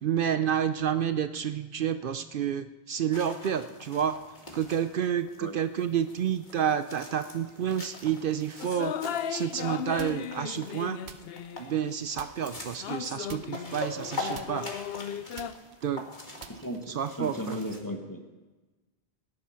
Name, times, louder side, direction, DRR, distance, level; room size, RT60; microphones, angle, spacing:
voice 1, 0.0-4.2 4.5-8.9 9.3-11.0 11.6-14.7 15.8-16.0 16.9-17.6, right 9 dB, 60° right, 11 dB, 0.8 m, -29 dB
sound 1, 3.1-17.8, left 2 dB, 50° left, 2.3 m, -43 dB
sound 2, 8.6-12.0 12.8-15.5, left 9 dB, 70° left, 0.9 m, -36 dB
sound 3, 10.0-10.5 11.0-11.9 12.2-12.7 13.3-14.1 14.3-17.1, right 7 dB, 90° right, 1.2 m, -48 dB
voice 2, 16.5-18.2, equal, 20° left, 3 dB, 1.3 m, -36 dB
18.0 x 11.0 x 5.7 m, 1.2 s
omnidirectional pair, 1.0 m